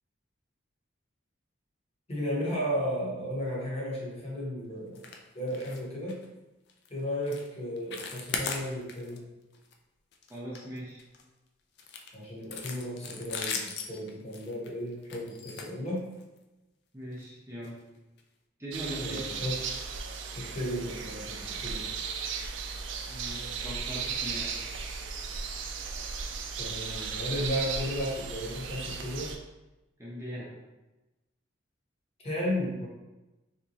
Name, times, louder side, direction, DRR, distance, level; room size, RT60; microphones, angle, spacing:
voice 1, 2.1-5.0 5.3-6.2 6.9-9.3 12.1-16.1 19.0-19.6 20.3-21.9 26.6-29.4 32.2-32.9, equal, 30° left, -5 dB, 0.9 m, -34 dB
sound 1, 4.9-5.2 5.5-5.8 6.1-6.3 6.7-6.9 7.3-7.5 7.8-9.2 9.5-9.7 10.1-11.2 11.8-16.4 17.1-17.3 17.6-17.7 18.2-18.3, left 5 dB, 55° left, 0.4 m, -38 dB
voice 2, 10.3-11.0 16.9-17.7 18.6-19.3 23.1-24.5 30.0-30.5, equal, 15° right, -6 dB, 0.5 m, -40 dB
sound 2, 18.7-29.4, right 5 dB, 65° right, 0.4 m, -36 dB
3.5 x 2.9 x 2.8 m, 1.0 s
head